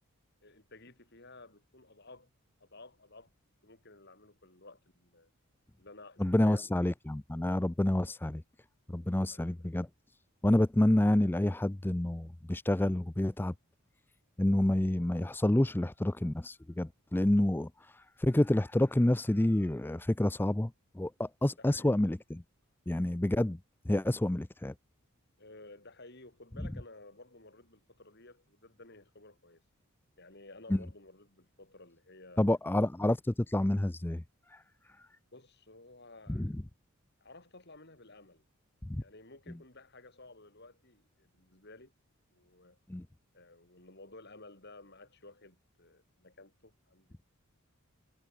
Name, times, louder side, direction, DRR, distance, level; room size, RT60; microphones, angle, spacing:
voice 1, 0.4-2.3 2.6-3.3 3.6-5.3 5.8-6.7 9.3-9.6 21.6-21.9 25.4-29.6 30.2-32.5 35.3-36.5 37.2-38.4 38.9-41.9 42.3-42.8 43.3-47.2, left 2 dB, 50° left, 5.5 m, -54 dB
voice 2, 6.2-8.4 8.9-9.9 10.4-13.5 14.4-22.4 22.9-23.6 23.9-24.7 30.7-30.8 32.4-34.2 34.5-34.6 35.0-35.1 36.3-36.6 38.8-39.0 42.9-43.1, left 1 dB, 10° left, 0.4 m, -28 dB
head